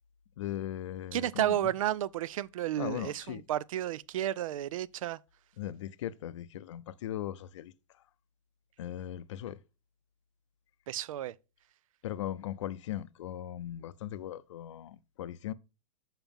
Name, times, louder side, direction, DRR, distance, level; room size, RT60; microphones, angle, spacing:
voice 1, 0.4-1.7 2.8-3.4 5.6-7.7 8.8-9.6 12.0-15.5, left 12 dB, 60° left, 0.5 m, -38 dB
voice 2, 1.1-5.2 10.9-11.3, right 12 dB, 85° right, 0.4 m, -32 dB
7.1 x 5.7 x 3.5 m
supercardioid pair, 175°, 17 cm